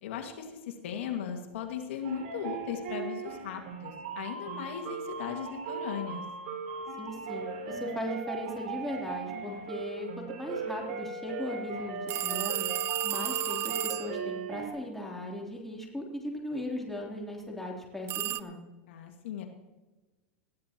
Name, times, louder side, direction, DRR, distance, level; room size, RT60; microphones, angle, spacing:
voice 1, 0.0-6.2 18.9-19.5, left 8 dB, 75° left, 3 dB, 1.9 m, -37 dB
sound 1, 2.0-14.7, right 4 dB, 65° right, 5.3 m, -38 dB
voice 2, 7.0-12.7 13.0-18.6, left 1 dB, 5° left, -2 dB, 3.2 m, -38 dB
sound 2, 12.1-14.2 18.1-18.4, right 15 dB, 40° right, 0.5 m, -32 dB
20.0 x 14.5 x 3.0 m, 1.2 s
supercardioid pair, 125°, 7 cm